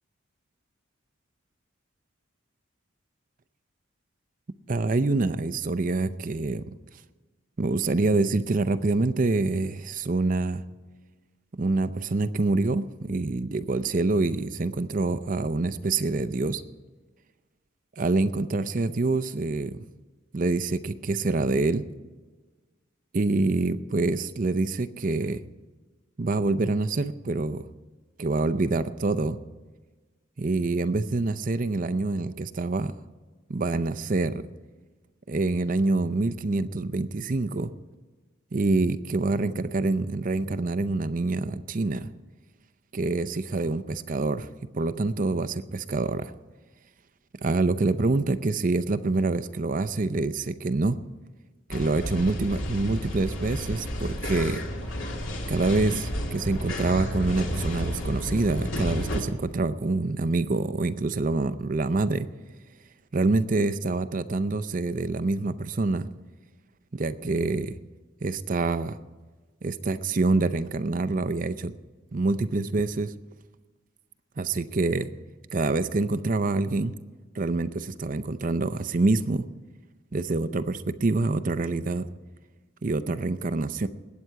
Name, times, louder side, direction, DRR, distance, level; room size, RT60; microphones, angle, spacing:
voice 1, 4.7-6.8 7.6-10.6 11.5-16.6 18.0-19.8 20.3-21.8 23.1-25.4 26.2-27.6 28.2-29.4 30.4-32.9 33.5-34.4 35.3-37.7 38.5-42.1 42.9-44.5 44.7-46.3 47.4-51.0 51.7-54.6 55.5-62.3 63.1-66.1 66.9-67.7 68.2-69.0 69.6-71.7 72.1-73.1 74.4-75.1 75.5-76.9 77.3-79.5 80.1-82.1 82.8-83.9, right 3 dB, 40° right, 13 dB, 0.5 m, -26 dB
sound 1, 51.7-59.2, equal, 70° left, 2.5 m, -31 dB
20.5 x 8.8 x 4.7 m, 1.3 s
head